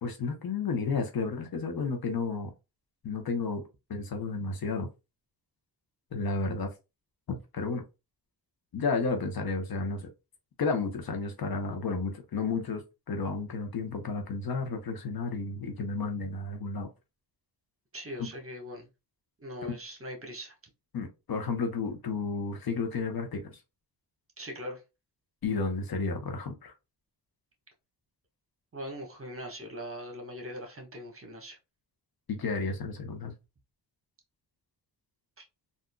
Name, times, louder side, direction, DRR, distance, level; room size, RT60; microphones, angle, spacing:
voice 1, 0.0-2.5 3.0-3.6 3.9-4.9 6.1-6.7 7.3-7.8 8.7-10.1 10.6-12.8 13.1-16.9 18.2-18.3 19.6-19.7 20.9-23.6 25.4-26.7 32.3-33.3, left 4 dB, 55° left, 0.9 m, -32 dB
voice 2, 17.9-18.9 19.4-20.5 24.4-24.8 28.7-31.6 35.4-35.5, equal, 30° right, 1.3 m, -41 dB
3.7 x 2.6 x 2.2 m
cardioid pair, 70°, 42 cm